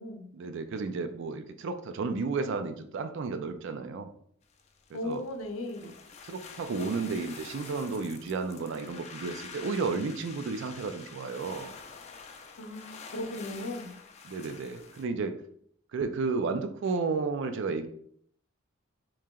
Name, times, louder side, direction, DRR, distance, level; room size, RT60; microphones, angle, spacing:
voice 1, 0.3-4.1 4.9-5.2 5.8-5.9 6.3-11.7 14.3-15.4 15.9-17.9, right 4 dB, 65° right, 8 dB, 0.4 m, -32 dB
sound 1, 4.4-15.0, left 5 dB, 35° left, 0.4 m, -47 dB
voice 2, 4.9-5.9 12.6-13.9, left 1 dB, 75° left, 5 dB, 0.6 m, -37 dB
3.1 x 2.8 x 3.6 m, 0.64 s
head